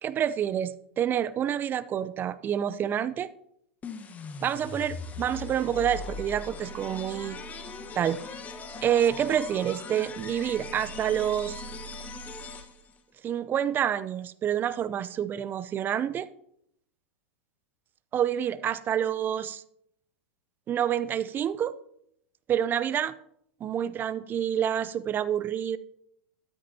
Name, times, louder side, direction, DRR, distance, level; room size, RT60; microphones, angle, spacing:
voice 1, 0.0-3.3 4.4-7.4 8.0-8.2 8.8-11.6 13.2-16.3 18.1-19.6 20.7-21.7 22.5-23.1 23.6-25.8, right 9 dB, 30° right, 0.6 m, -28 dB
sound 1, 3.8-13.0, left 3 dB, 20° left, 1.2 m, -40 dB
13.5 x 12.5 x 2.8 m
hypercardioid pair, 105°, 7 cm